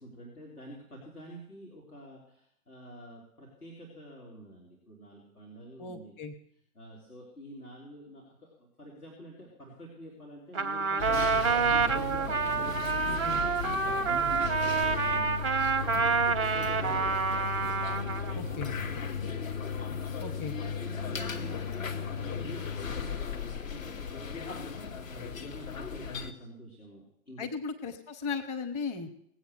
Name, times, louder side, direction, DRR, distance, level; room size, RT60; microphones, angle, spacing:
voice 1, 0.0-6.2 6.7-17.4 18.1-24.7 25.1-27.5, equal, 75° left, -3 dB, 4.0 m, -48 dB
voice 2, 5.8-6.3 13.2-13.4 18.3-18.7 20.2-20.5 27.4-29.1, left 5 dB, 15° left, 5 dB, 0.8 m, -36 dB
Trumpet, 10.5-18.4, right 5 dB, 20° right, 0.5 m, -28 dB
sound 1, 11.0-26.3, left 6 dB, 60° left, 1.5 m, -36 dB
19.0 x 8.2 x 6.6 m, 0.73 s
figure-of-eight pair, 120°, 45 cm